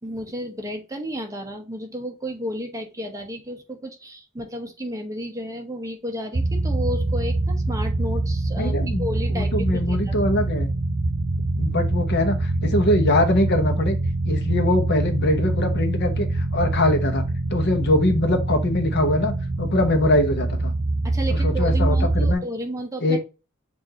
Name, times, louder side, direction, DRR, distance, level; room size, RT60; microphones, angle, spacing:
voice 1, 0.0-10.1 21.0-23.2, equal, 15° right, 3 dB, 1.0 m, -32 dB
sound 1, 6.3-22.3, right 2 dB, 35° right, 0.6 m, -24 dB
voice 2, 8.6-10.7 11.6-14.0 14.2-17.2 17.5-20.8 21.3-22.4 23.0-23.2, left 1 dB, 50° left, 6 dB, 1.0 m, -22 dB
6.7 x 2.7 x 2.9 m, 0.30 s
head